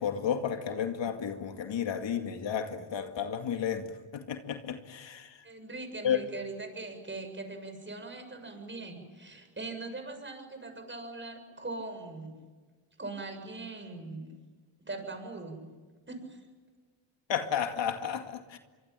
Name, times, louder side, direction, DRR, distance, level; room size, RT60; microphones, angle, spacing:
voice 1, 0.0-3.9 4.1-5.4 6.0-6.2 17.3-18.6, left 8 dB, 65° left, 2.3 m, -32 dB
voice 2, 5.4-12.3 13.0-14.3 14.8-15.7 16.1-16.5, right 3 dB, 25° right, 7.3 m, -41 dB
25.0 x 24.5 x 9.1 m
cardioid pair, 95°, 48 cm